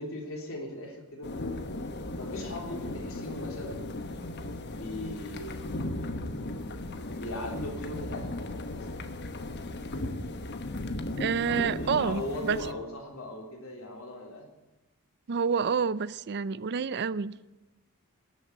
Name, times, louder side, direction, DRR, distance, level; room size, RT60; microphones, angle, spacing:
voice 1, 0.0-1.7 2.2-3.9 4.7-5.8 7.1-8.3 8.7-9.0 11.5-14.5, left 1 dB, 65° left, 3.4 m, -39 dB
sound 1, 1.2-12.7, left 2 dB, 50° left, 1.1 m, -36 dB
voice 2, 11.2-12.6 15.3-17.3, right 6 dB, 50° right, 0.5 m, -28 dB
19.0 x 7.3 x 9.3 m
head